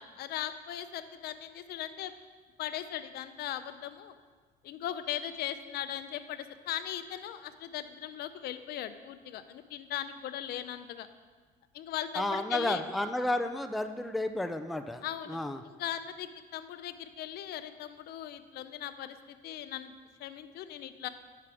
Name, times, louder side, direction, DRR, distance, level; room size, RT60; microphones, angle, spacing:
voice 1, 0.0-2.1 2.6-4.2 4.6-11.1 11.7-12.8 15.0-15.4 15.8-19.9 20.2-21.1, left 11 dB, 70° left, 11 dB, 0.5 m, -38 dB
voice 2, 12.2-15.6, left 1 dB, ahead, 7 dB, 0.4 m, -32 dB
8.5 x 5.8 x 4.8 m, 1.5 s
cardioid pair, 110°, 17 cm